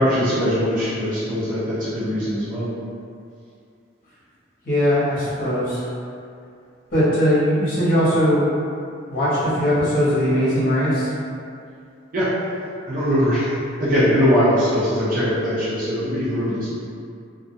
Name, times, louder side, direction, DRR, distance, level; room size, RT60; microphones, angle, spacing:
voice 1, 0.0-2.7 12.1-12.3 12.9-13.5 13.8-16.7, equal, 45° right, -11 dB, 0.5 m, -21 dB
voice 2, 4.6-5.8 6.9-8.6 9.1-11.1, equal, 45° left, -10 dB, 0.9 m, -19 dB
2.3 x 2.2 x 2.6 m, 2.4 s
head